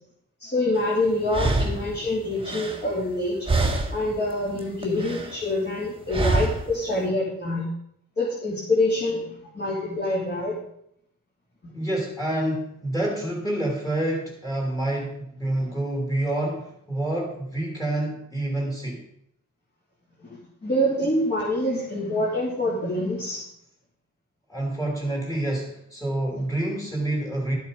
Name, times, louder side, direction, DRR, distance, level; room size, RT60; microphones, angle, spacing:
voice 1, 0.4-3.4 3.9-7.6 8.2-10.6 15.5-15.6 20.2-23.4 26.3-26.4, left 1 dB, 30° left, -8 dB, 3.5 m, -26 dB
sound 1, 0.8-0.9 1.3-3.2 3.5-4.2 4.5-5.4 6.1-6.8, right 2 dB, 15° right, 1.5 m, -26 dB
voice 2, 11.7-19.0 24.5-27.5, right 1 dB, 10° left, -1 dB, 3.0 m, -28 dB
12.5 x 8.1 x 5.1 m, 0.73 s
wide cardioid pair, 175°, 32 cm